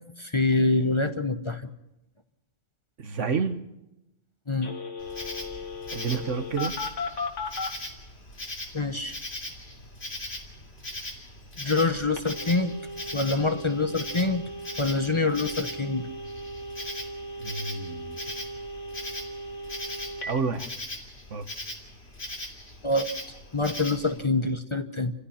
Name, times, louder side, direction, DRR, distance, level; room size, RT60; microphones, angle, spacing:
voice 1, 0.2-1.7 4.5-4.7 8.7-9.2 11.6-12.7 13.1-14.4 14.8-16.1 22.8-23.1 23.5-25.1, left 3 dB, 25° left, 8 dB, 1.1 m, -25 dB
voice 2, 3.0-3.6 5.9-6.7 17.4-18.2 20.3-20.7 21.3-21.5, right 5 dB, 75° right, 9 dB, 1.7 m, -29 dB
Telephone, 4.6-7.7 12.2-20.3, left 1 dB, 75° left, 2.6 m, -37 dB
Insect, 5.0-24.2, left 1 dB, 55° left, 3.6 m, -40 dB
29.0 x 16.0 x 5.7 m, 0.90 s
omnidirectional pair, 1.3 m